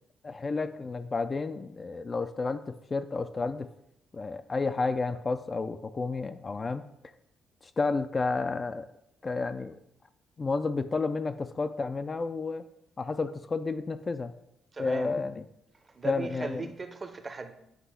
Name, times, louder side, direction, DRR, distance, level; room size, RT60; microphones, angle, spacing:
voice 1, 0.2-3.7 4.1-6.9 7.8-8.9 9.2-9.7 10.4-12.6 13.0-14.3 14.8-15.3 16.0-16.6, left 3 dB, 30° left, 0.3 m, -31 dB
voice 2, 14.7-15.2 15.7-17.5, right 4 dB, 30° right, 0.6 m, -38 dB
8.1 x 2.8 x 5.6 m
cardioid pair, 90°, 0 cm